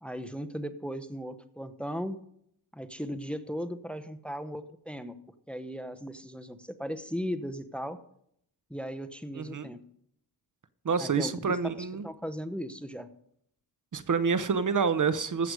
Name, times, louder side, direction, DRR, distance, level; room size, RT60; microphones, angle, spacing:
voice 1, 0.0-2.2 2.7-5.1 5.5-8.0 8.7-9.8 11.0-13.1, equal, 5° left, 10 dB, 0.8 m, -37 dB
voice 2, 9.3-9.7 10.8-12.1 13.9-15.5, right 5 dB, 50° right, 13 dB, 0.8 m, -28 dB
14.5 x 7.8 x 4.8 m, 0.70 s
wide cardioid pair, 90°, 41 cm